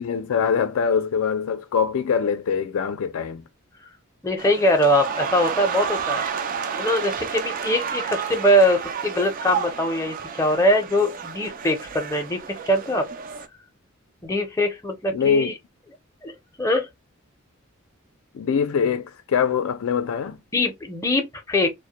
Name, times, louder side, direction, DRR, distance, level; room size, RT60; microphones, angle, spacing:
voice 1, 0.0-3.4 15.1-15.5 18.3-20.4, left 6 dB, 75° left, 0.4 m, -23 dB
voice 2, 4.2-6.2 6.8-12.4 12.7-13.1 14.2-15.5 16.2-16.9 20.5-21.7, equal, 15° left, 0.5 m, -22 dB
sound 1, 4.4-13.5, right 7 dB, 40° right, 0.3 m, -31 dB
2.1 x 2.1 x 2.8 m
head